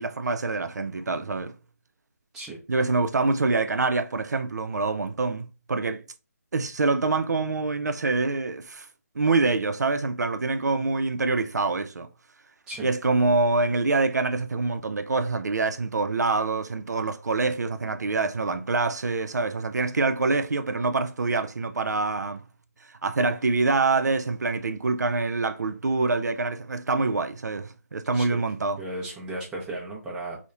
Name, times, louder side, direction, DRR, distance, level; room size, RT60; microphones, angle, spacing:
voice 1, 0.0-1.5 2.7-6.0 6.5-8.9 9.2-12.1 12.8-22.4 23.0-28.8, right 3 dB, 85° right, 0.4 m, -25 dB
voice 2, 28.8-30.4, right 1 dB, 5° right, 0.5 m, -35 dB
2.9 x 2.0 x 2.3 m
figure-of-eight pair, 160°, 9 cm